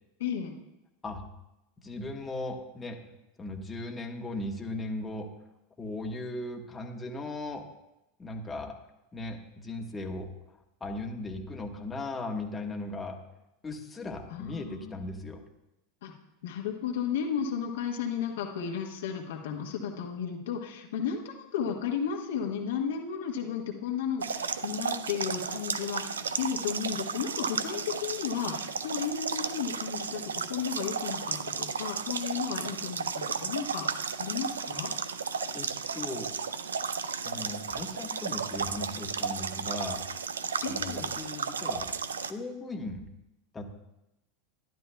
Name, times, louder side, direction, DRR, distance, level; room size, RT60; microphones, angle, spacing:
voice 1, 0.2-0.5 14.3-15.2 16.0-16.1 16.4-34.9 40.6-41.1, left 7 dB, 75° left, 1 dB, 1.3 m, -34 dB
voice 2, 1.8-3.0 3.4-5.3 5.8-7.6 8.2-8.7 9.1-13.2 13.6-15.4 35.5-36.3 37.2-40.0 40.7-41.9 42.3-43.1 43.5-43.7, left 2 dB, 20° left, 2 dB, 1.2 m, -37 dB
sound 1, 24.2-42.3, right 6 dB, 85° right, 0.4 m, -34 dB
12.0 x 11.0 x 2.3 m, 0.91 s
hypercardioid pair, 95°, 0 cm